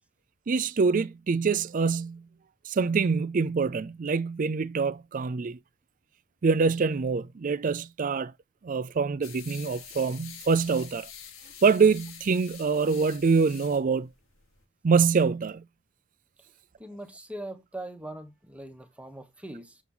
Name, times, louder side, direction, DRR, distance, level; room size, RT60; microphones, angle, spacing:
voice 1, 0.5-2.2 2.7-5.6 6.4-8.3 8.6-11.1 11.6-14.1 14.8-15.6, right 5 dB, 40° right, 0.4 m, -25 dB
sound 1, 9.2-14.6, left 8 dB, 85° left, 1.8 m, -47 dB
voice 2, 16.8-19.8, right 1 dB, 5° right, 1.1 m, -41 dB
7.2 x 5.9 x 3.8 m
head